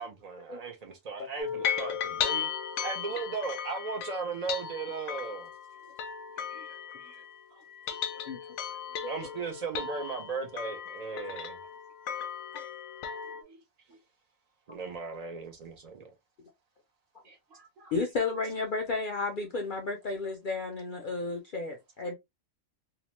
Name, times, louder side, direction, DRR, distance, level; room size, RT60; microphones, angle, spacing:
voice 1, 0.0-2.5 2.8-5.5 9.1-11.6 14.7-16.1, right 4 dB, 75° right, 0.3 m, -37 dB
sound 1, 1.4-7.4 7.7-13.4, left 8 dB, 90° left, 1.0 m, -36 dB
voice 2, 6.4-7.2 7.5-7.6 8.1-8.3 8.7-8.8 13.4-13.6 17.2-17.9, right 2 dB, 55° right, 0.9 m, -58 dB
voice 3, 17.8-22.1, left 3 dB, 65° left, 0.5 m, -33 dB
2.8 x 2.0 x 2.9 m
omnidirectional pair, 1.4 m